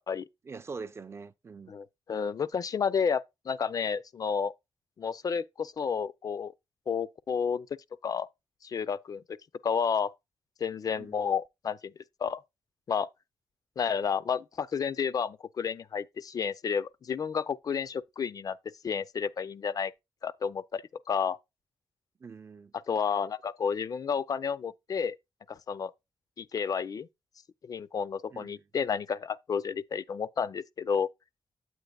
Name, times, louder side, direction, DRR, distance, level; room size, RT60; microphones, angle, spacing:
voice 1, 0.4-1.7 11.0-11.2 22.2-22.7 28.3-28.6, right 4 dB, 30° right, 0.3 m, -43 dB
voice 2, 1.7-4.5 5.0-6.5 6.9-7.7 8.0-8.3 8.6-9.4 9.6-10.1 10.6-11.9 12.2-12.4 12.9-13.1 13.8-18.6 18.8-19.9 20.2-21.4 22.9-25.2 25.5-25.9 26.4-27.1 27.6-31.1, left 6 dB, 50° left, 0.4 m, -31 dB
8.9 x 7.9 x 2.2 m
wide cardioid pair, 145°, 8 cm